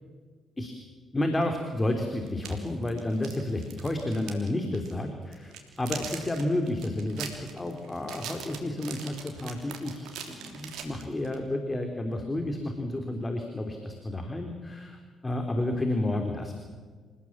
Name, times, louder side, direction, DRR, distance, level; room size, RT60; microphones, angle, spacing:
voice 1, 1.1-16.5, left 1 dB, 25° left, 4 dB, 3.3 m, -31 dB
sound 1, 2.3-4.5 4.7-4.9 5.3-11.4, right 8 dB, 70° right, 3.3 m, -41 dB
28.0 x 17.0 x 7.4 m, 1.5 s
hypercardioid pair, 45°, 0 cm